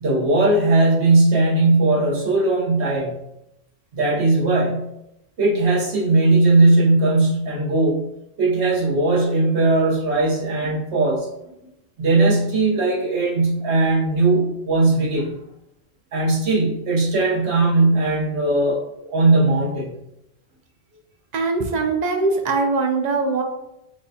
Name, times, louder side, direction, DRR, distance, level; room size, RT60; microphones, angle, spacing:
voice 1, 0.0-3.2 3.9-4.9 5.4-8.1 8.4-11.7 12.0-15.4 16.1-20.0, right 2 dB, 80° right, -2 dB, 1.2 m, -19 dB
voice 2, 21.3-23.4, right 3 dB, 50° right, 4 dB, 0.5 m, -21 dB
6.2 x 2.2 x 2.7 m, 0.85 s
omnidirectional pair, 1.1 m